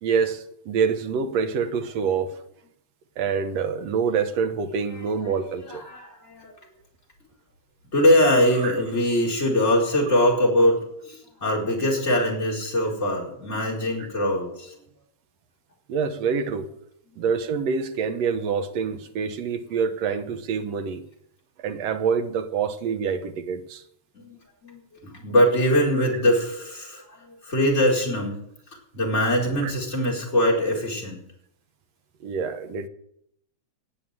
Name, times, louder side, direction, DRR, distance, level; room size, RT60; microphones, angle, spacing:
voice 1, 0.0-2.4 3.2-5.8 8.6-8.8 15.9-16.7 17.2-21.0 21.6-23.8 29.6-29.7 32.2-32.9, right 6 dB, 65° right, 2.2 m, -26 dB
voice 2, 4.9-5.3 5.7-6.6 7.9-14.7 24.1-28.4 28.9-31.2, left 1 dB, 20° left, 4.8 m, -23 dB
19.5 x 7.0 x 9.1 m
omnidirectional pair, 3.4 m